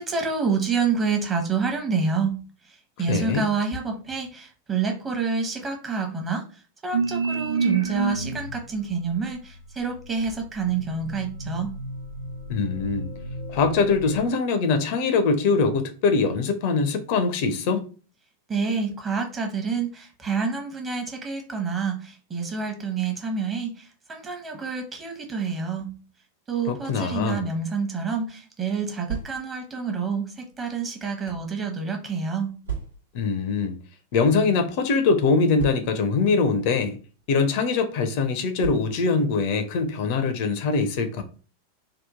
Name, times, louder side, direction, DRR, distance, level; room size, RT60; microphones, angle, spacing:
voice 1, 0.0-2.3 2.7-6.4 6.8-11.8 18.5-25.9 26.5-32.5, right 5 dB, 20° right, 0.9 m, -28 dB
voice 2, 3.1-3.4 12.5-13.1 13.5-17.8 26.7-27.4 33.1-33.8 34.1-37.0 37.3-41.2, left 4 dB, 45° left, 0.5 m, -23 dB
sound 1, 6.9-8.6 9.3-14.2, right 4 dB, 70° right, 0.7 m, -30 dB
sound 2, 28.8-29.7 30.5-31.5 32.6-33.2 34.1-34.3 34.5-34.6 35.5-36.2 37.1-37.3 38.6-39.2, right 7 dB, 85° right, 1.1 m, -35 dB
2.9 x 2.3 x 3.6 m
figure-of-eight pair, 90°, 0 cm